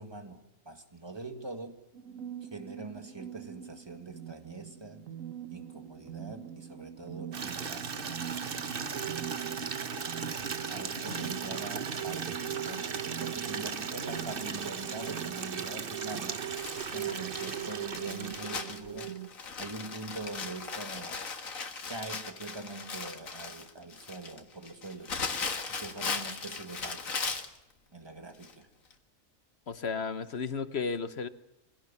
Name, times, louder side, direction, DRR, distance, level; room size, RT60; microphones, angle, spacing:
voice 1, 0.0-1.8 2.4-5.1 5.5-8.8 10.7-16.5 16.9-19.2 19.6-21.2 21.9-25.2 25.7-27.2 27.9-28.7, right 3 dB, 20° right, 6 dB, 2.0 m, -43 dB
sound 1, 1.9-19.3, right 10 dB, 80° right, 1.4 m, -41 dB
Water tap faucet / Liquid, 7.3-18.9, right 5 dB, 45° right, 1.2 m, -37 dB
Crumpling crinkling, 16.6-27.6 28.4-28.5 28.9-29.0, left 4 dB, 85° left, 2.1 m, -38 dB
voice 2, 29.7-31.3, left 5 dB, 55° left, 12 dB, 1.3 m, -34 dB
23.5 x 17.5 x 7.3 m, 0.93 s
omnidirectional pair, 1.4 m